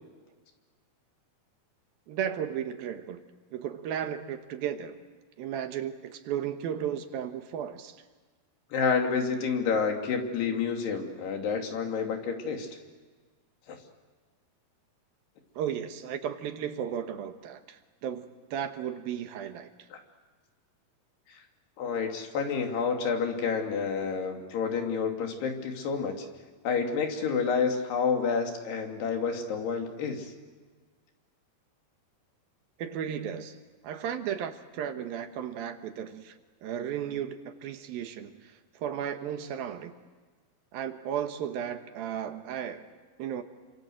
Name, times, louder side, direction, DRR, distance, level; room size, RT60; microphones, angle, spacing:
voice 1, 2.1-3.2 3.5-5.0 5.4-8.0 15.6-19.7 32.8-33.6 33.8-36.4 36.6-39.9 40.7-42.9 43.2-43.4, right 9 dB, 70° right, 8 dB, 2.9 m, -34 dB
voice 2, 8.7-12.7 13.7-13.8 19.9-20.0 21.3-21.4 21.8-26.3 26.6-30.3, left 5 dB, 80° left, 3 dB, 4.8 m, -29 dB
28.5 x 26.0 x 7.8 m, 1.4 s
omnidirectional pair, 4.6 m